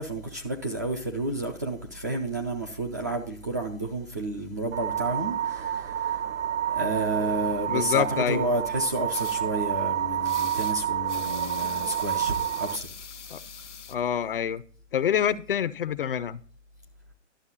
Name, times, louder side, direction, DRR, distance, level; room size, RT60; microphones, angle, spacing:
voice 1, 0.0-6.2 6.7-12.9, right 2 dB, 15° right, 0.3 m, -31 dB
sound 1, 4.7-12.8, right 10 dB, 80° right, 0.5 m, -29 dB
voice 2, 7.7-8.5 13.3-13.4 13.9-14.6 14.9-16.4, left 9 dB, 50° left, 0.6 m, -26 dB
sound 2, 9.1-9.4 10.2-10.8 11.1-13.9, left 7 dB, 70° left, 1.0 m, -43 dB
11.5 x 7.0 x 3.9 m
figure-of-eight pair, 125°, 37 cm